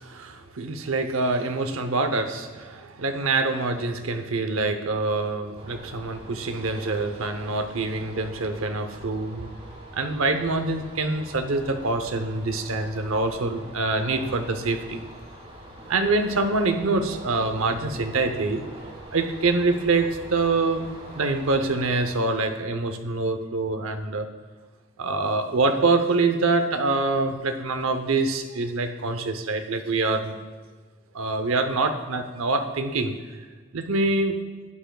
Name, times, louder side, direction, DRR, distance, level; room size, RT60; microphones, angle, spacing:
voice 1, 0.0-9.5 9.9-15.0 15.9-18.6 19.1-20.9 21.1-24.3 25.0-30.4 31.1-33.1 33.7-34.4, right 3 dB, 75° right, 7 dB, 0.7 m, -25 dB
sound 1, 5.6-22.2, right 1 dB, 30° right, 1.6 m, -43 dB
12.0 x 9.1 x 2.3 m, 1.4 s
head